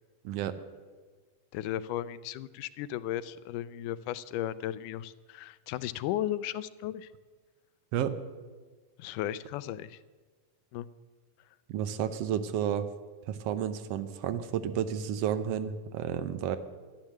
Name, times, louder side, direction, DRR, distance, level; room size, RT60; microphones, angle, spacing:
voice 1, 0.2-0.6 7.9-8.2 11.7-12.9 13.3-16.6, right 9 dB, 70° right, 11 dB, 1.5 m, -31 dB
voice 2, 1.5-7.1 9.0-10.0 10.7-10.9, left 12 dB, 90° left, 16 dB, 2.1 m, -35 dB
13.5 x 10.5 x 7.4 m, 1.4 s
omnidirectional pair, 3.6 m